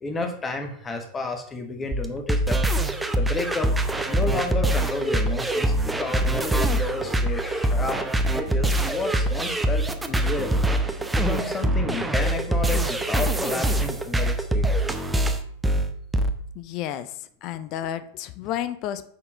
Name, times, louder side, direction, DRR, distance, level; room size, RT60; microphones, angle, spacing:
voice 1, 0.0-2.6 3.1-3.7 4.1-8.0 8.3-10.7 11.2-14.7, left 3 dB, 15° left, 5 dB, 1.2 m, -31 dB
sound 1, 1.9-16.3, right 1 dB, 10° right, 0.7 m, -24 dB
voice 2, 16.6-19.1, left 11 dB, 40° left, 12 dB, 0.5 m, -32 dB
6.6 x 4.3 x 5.2 m, 0.64 s
figure-of-eight pair, 90°, 0 cm